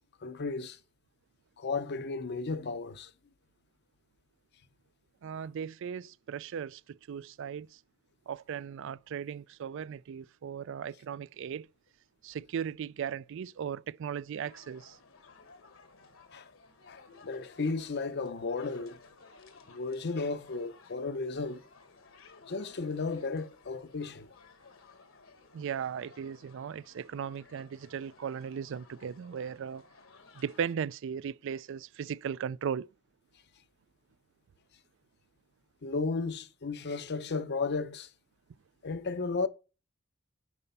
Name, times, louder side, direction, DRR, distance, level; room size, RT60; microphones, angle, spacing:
voice 1, 0.2-0.8 1.6-3.1 16.3-16.5 16.9-19.0 19.7-21.6 22.5-24.3 35.8-38.1 38.8-39.5, left 4 dB, 55° left, 0.6 m, -34 dB
voice 2, 5.2-7.7 8.3-11.7 12.2-15.0 25.5-29.9 30.3-32.9, right 7 dB, 65° right, 0.3 m, -37 dB
sound 1, 14.4-30.7, left 4 dB, 70° left, 1.2 m, -57 dB
9.6 x 4.5 x 5.4 m
head